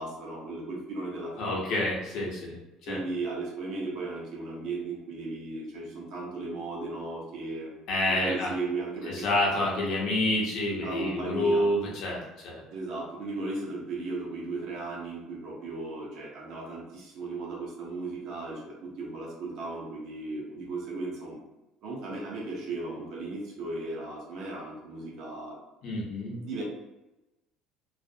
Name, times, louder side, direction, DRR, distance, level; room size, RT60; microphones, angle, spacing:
voice 1, 0.0-1.9 2.9-7.7 8.1-9.8 10.8-11.7 12.7-21.4 21.8-25.6 26.4-26.6, right 3 dB, 55° right, -2 dB, 0.7 m, -36 dB
voice 2, 1.4-2.6 2.9-3.0 7.9-8.5 9.1-12.6 25.8-26.4, left 1 dB, 55° left, -3 dB, 0.8 m, -28 dB
2.4 x 2.0 x 2.6 m, 0.99 s
cardioid pair, 165°, 0 cm